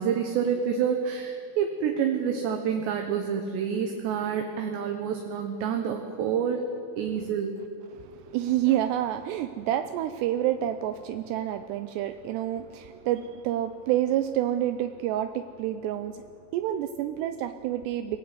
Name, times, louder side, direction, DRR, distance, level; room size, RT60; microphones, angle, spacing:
voice 1, 0.0-6.6 7.0-7.6, right 7 dB, 70° right, 5 dB, 3.2 m, -28 dB
voice 2, 7.9-16.2 16.5-18.2, right 12 dB, 90° right, 10 dB, 2.4 m, -28 dB
23.5 x 17.5 x 9.4 m, 2.5 s
omnidirectional pair, 5.7 m